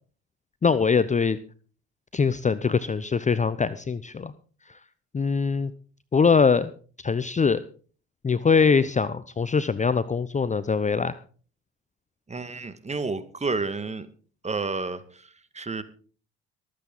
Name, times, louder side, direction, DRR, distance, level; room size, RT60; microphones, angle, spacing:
voice 1, 0.6-1.4 2.1-4.3 4.7-4.8 5.1-5.7 6.1-6.7 7.0-7.6 8.2-11.2, left 5 dB, 20° left, 15 dB, 0.8 m, -22 dB
voice 2, 12.3-14.1 14.4-15.8, right 3 dB, 20° right, 12 dB, 1.8 m, -31 dB
24.0 x 8.5 x 3.9 m, 0.41 s
hypercardioid pair, 60°, 32 cm